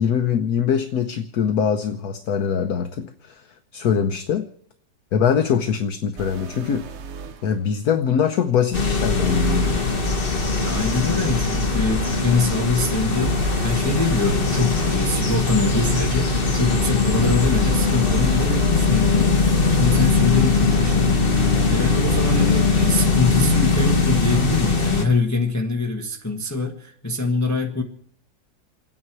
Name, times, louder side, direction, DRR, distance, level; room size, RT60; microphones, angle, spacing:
voice 1, 0.0-3.4 3.7-4.5 5.1-6.8 7.4-9.8, left 7 dB, 60° left, 8 dB, 1.2 m, -22 dB
sound 1, 6.2-7.4 9.3-11.4 13.2-15.3 17.2-19.3, right 5 dB, 55° right, 0.8 m, -33 dB
sound 2, 8.7-25.0, left 4 dB, 35° left, 1.6 m, -20 dB
voice 2, 10.6-27.8, left 3 dB, 10° left, 2 dB, 1.2 m, -24 dB
29.0 x 9.8 x 4.6 m, 0.72 s
omnidirectional pair, 1.9 m